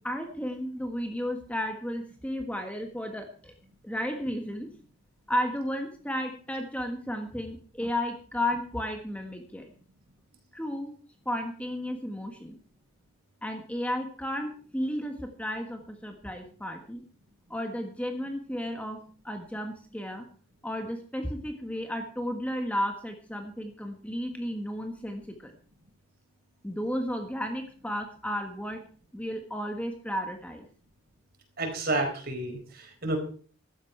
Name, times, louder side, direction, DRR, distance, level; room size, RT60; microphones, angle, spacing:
voice 1, 0.0-3.5 3.8-4.7 5.3-9.7 10.5-10.9 11.2-12.6 13.4-17.0 17.5-19.0 19.2-20.2 20.6-25.5 26.6-28.8 29.1-30.6, equal, 5° left, 4 dB, 1.5 m, -33 dB
voice 2, 31.6-33.2, right 2 dB, 45° right, 4 dB, 4.4 m, -30 dB
15.5 x 13.0 x 4.6 m, 0.42 s
head